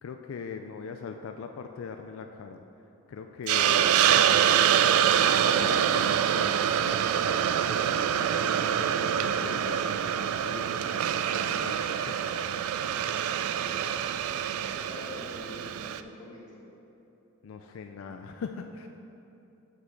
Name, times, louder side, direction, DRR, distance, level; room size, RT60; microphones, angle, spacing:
voice 1, 0.0-2.6 3.1-4.2 4.9-7.3 7.6-12.4 17.4-18.9, left 5 dB, 65° left, 6 dB, 0.3 m, -41 dB
Hiss, 3.5-16.0, right 9 dB, 80° right, 0.3 m, -25 dB
voice 2, 14.7-16.6, left 1 dB, 20° left, -6 dB, 1.7 m, -45 dB
6.2 x 5.4 x 5.8 m, 2.9 s
head